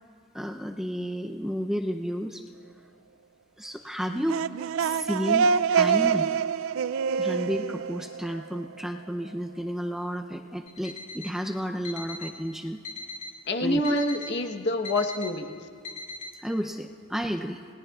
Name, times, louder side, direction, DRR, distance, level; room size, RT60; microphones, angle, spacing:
voice 1, 0.3-2.4 3.6-4.5 4.8-6.3 7.2-12.8 13.6-14.0 16.4-17.6, equal, ahead, 2 dB, 0.5 m, -32 dB
sound 1, 4.1-8.8, right 6 dB, 70° right, 0.3 m, -26 dB
Alarm, 10.7-11.4 11.8-12.4 12.8-13.4 13.8-14.4 14.8-15.3 15.8-16.3, left 2 dB, 35° left, 1.8 m, -40 dB
voice 2, 13.5-15.5, left 1 dB, 50° left, 4 dB, 1.1 m, -26 dB
29.0 x 20.0 x 2.4 m, 2.2 s
head